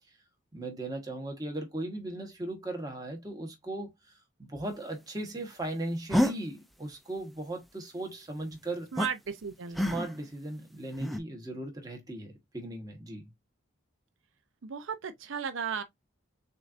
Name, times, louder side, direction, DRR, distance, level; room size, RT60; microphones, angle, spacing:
voice 1, 0.5-8.9 9.8-13.3, right 1 dB, 20° right, 1.2 m, -37 dB
sound 1, 6.1-6.3 9.0-9.1 9.7-10.3 10.9-11.2, equal, ahead, 0.4 m, -27 dB
voice 2, 8.9-9.9 14.6-15.8, right 6 dB, 75° right, 0.6 m, -35 dB
6.3 x 2.6 x 2.5 m
head